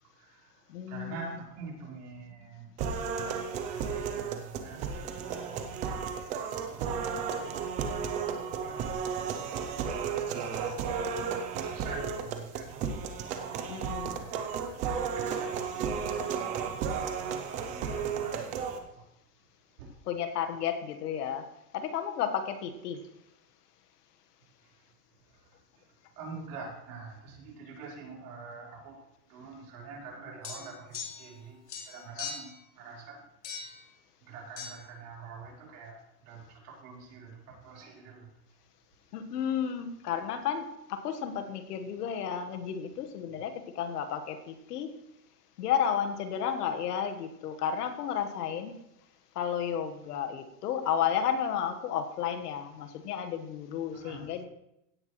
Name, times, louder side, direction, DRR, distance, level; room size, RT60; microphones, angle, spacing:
voice 1, 0.1-6.1 6.5-9.0 10.2-16.3 17.4-18.6 18.9-19.1 19.8-20.0 24.6-24.9 25.3-33.3 34.2-38.3 53.9-54.3, right 4 dB, 65° right, -3 dB, 4.3 m, -47 dB
voice 2, 0.7-1.1 13.7-14.2 20.1-21.5 21.7-23.0 39.1-44.9 45.6-48.8 49.3-54.5, left 8 dB, 70° left, 7 dB, 1.5 m, -32 dB
sound 1, 2.8-18.8, right 6 dB, 15° right, 0.4 m, -33 dB
sound 2, 30.4-31.4 31.7-32.6 33.4-33.8 34.6-34.7, left 6 dB, 90° left, 3.6 m, -40 dB
16.5 x 9.8 x 3.1 m, 0.83 s
supercardioid pair, 150°, 48 cm